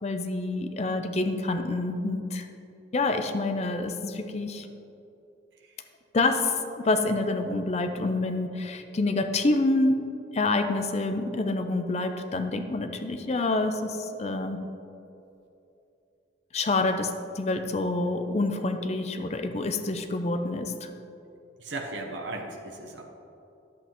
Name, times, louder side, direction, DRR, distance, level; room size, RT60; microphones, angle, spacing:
voice 1, 0.0-2.5 2.9-4.7 6.1-10.0 10.3-14.6 16.5-17.1 17.4-20.9, left 2 dB, 35° left, 7 dB, 0.5 m, -27 dB
voice 2, 21.6-23.0, right 2 dB, 85° right, 2 dB, 0.9 m, -36 dB
10.5 x 8.0 x 3.0 m, 2.8 s
head